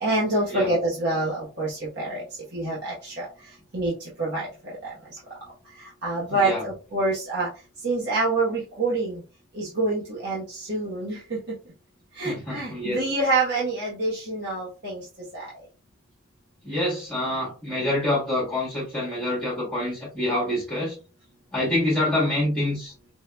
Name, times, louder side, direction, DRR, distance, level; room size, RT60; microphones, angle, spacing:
voice 1, 0.0-2.2 2.5-3.1 3.7-4.8 6.0-7.5 7.8-9.2 9.5-11.4 12.2-15.0 15.3-15.5, right 2 dB, 55° right, -7 dB, 1.1 m, -26 dB
voice 2, 6.3-6.6 12.2-13.0 16.6-21.0 21.5-22.9, left 1 dB, 5° left, -8 dB, 1.4 m, -26 dB
4.7 x 2.7 x 2.2 m, 0.32 s
head